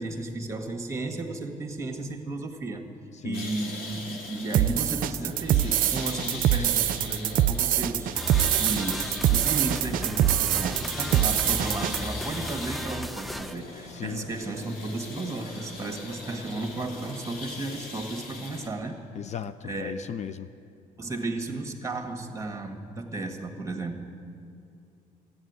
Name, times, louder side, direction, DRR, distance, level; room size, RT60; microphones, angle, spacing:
voice 1, 0.0-2.8 3.2-19.0 19.6-20.0 21.0-24.1, right 2 dB, 20° right, 5 dB, 1.7 m, -34 dB
voice 2, 3.1-3.5 11.5-11.7 13.9-14.3 19.1-20.5, left 9 dB, 50° left, 12 dB, 0.5 m, -37 dB
sound 1, 3.3-18.7, left 3 dB, 70° left, 2.2 m, -40 dB
sound 2, 4.5-12.0, right 12 dB, 65° right, 0.5 m, -24 dB
sound 3, 8.1-13.6, equal, ahead, 0.5 m, -35 dB
13.5 x 8.8 x 9.5 m, 2.6 s
supercardioid pair, 75°, 15 cm